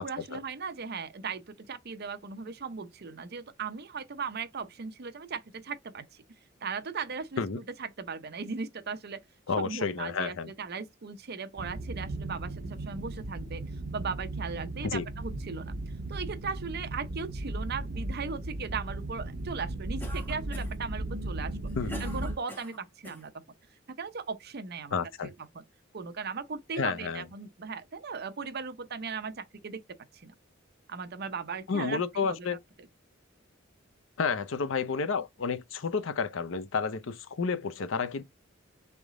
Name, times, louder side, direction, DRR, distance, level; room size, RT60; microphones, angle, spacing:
voice 1, 0.0-6.2 6.6-9.2 9.6-13.6 13.9-15.7 16.1-21.6 22.0-23.3 23.9-25.6 25.9-29.8 30.1-30.3 30.9-32.5, right 5 dB, 55° right, 0.7 m, -38 dB
voice 2, 9.5-10.5 14.8-15.0 21.8-22.2 24.9-25.3 26.8-27.2 31.7-32.6 34.2-38.2, left 5 dB, 70° left, 0.6 m, -31 dB
sound 1, 11.6-22.4, right 2 dB, 85° right, 1.0 m, -36 dB
Cough, 20.0-20.9 21.5-23.3, right 1 dB, 10° left, 1.3 m, -43 dB
3.9 x 3.5 x 3.6 m
head